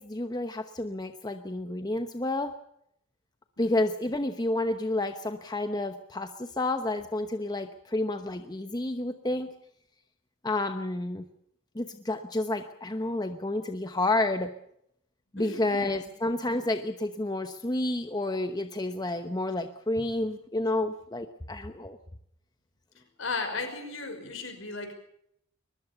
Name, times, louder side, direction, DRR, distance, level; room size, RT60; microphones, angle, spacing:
voice 1, 0.0-2.5 3.6-9.5 10.4-11.2 11.7-14.5 15.3-22.0, left 2 dB, 20° left, 7 dB, 0.9 m, -30 dB
voice 2, 15.4-15.9 23.2-24.9, left 3 dB, 65° left, 7 dB, 5.7 m, -35 dB
22.5 x 20.0 x 7.0 m, 0.73 s
head